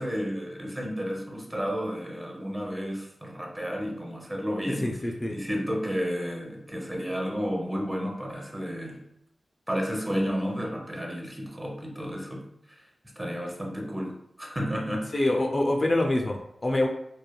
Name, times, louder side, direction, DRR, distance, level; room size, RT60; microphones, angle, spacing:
voice 1, 0.0-4.9 5.3-9.0 9.7-12.8 13.2-15.3, equal, 20° right, -1 dB, 0.7 m, -32 dB
voice 2, 4.8-5.3 15.1-16.9, left 1 dB, 35° left, 1 dB, 0.3 m, -25 dB
3.1 x 2.2 x 2.2 m, 0.77 s
cardioid pair, 60°, 0 cm